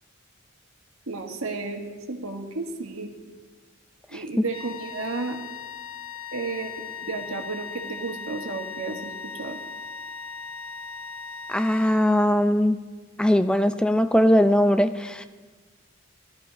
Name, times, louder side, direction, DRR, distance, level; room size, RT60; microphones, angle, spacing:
voice 1, 1.1-3.1 4.1-5.4 6.3-9.6, right 3 dB, 85° right, 3 dB, 1.6 m, -33 dB
sound 1, 4.5-12.4, left 5 dB, 70° left, 2.4 m, -38 dB
voice 2, 11.5-12.8 13.2-15.2, equal, 5° left, 10 dB, 0.4 m, -20 dB
16.0 x 13.0 x 5.1 m, 1.4 s
head